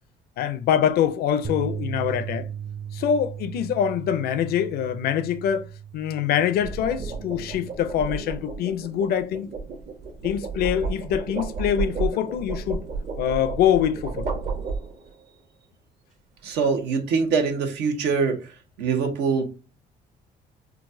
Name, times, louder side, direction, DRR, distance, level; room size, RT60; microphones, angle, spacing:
voice 1, 0.4-2.5 2.9-9.5 10.2-12.8 13.2-14.4, left 9 dB, 65° left, 0.4 m, -24 dB
sound 1, 0.9-1.2 6.3-15.2, right 4 dB, 45° right, 0.9 m, -32 dB
sound 2, 1.4-7.7, right 7 dB, 30° right, 0.6 m, -36 dB
voice 2, 16.4-18.4 18.8-19.5, right 5 dB, 80° right, 0.9 m, -23 dB
3.9 x 2.3 x 2.6 m
cardioid pair, 110°, 17 cm